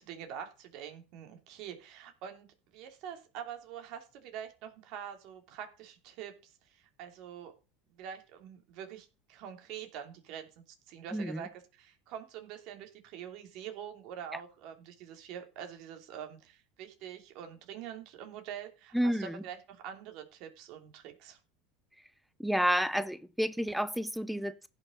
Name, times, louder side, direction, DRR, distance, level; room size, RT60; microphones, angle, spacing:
voice 1, 0.0-7.5 8.0-21.4, right 9 dB, 60° right, 2.9 m, -45 dB
voice 2, 11.1-11.4 18.9-19.4 22.4-24.7, equal, ahead, 1.0 m, -30 dB
16.0 x 6.1 x 3.9 m
hypercardioid pair, 85°, 0 cm